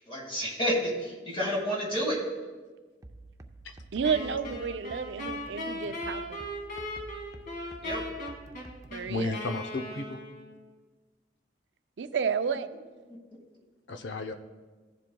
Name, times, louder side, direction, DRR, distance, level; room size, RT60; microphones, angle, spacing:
voice 1, 0.1-2.2 7.8-8.0, equal, 30° left, -2 dB, 1.6 m, -30 dB
sound 1, 3.0-9.0, right 2 dB, 20° right, 0.5 m, -49 dB
voice 2, 3.9-6.4 8.9-9.4 12.0-12.7, right 6 dB, 70° right, 11 dB, 0.4 m, -31 dB
Wind instrument woodwind instrument, 4.0-10.6, left 1 dB, 50° left, 1.9 m, -38 dB
voice 3, 9.1-10.2 13.9-14.3, left 2 dB, 75° left, 7 dB, 0.6 m, -33 dB
16.0 x 7.5 x 2.3 m, 1.3 s
head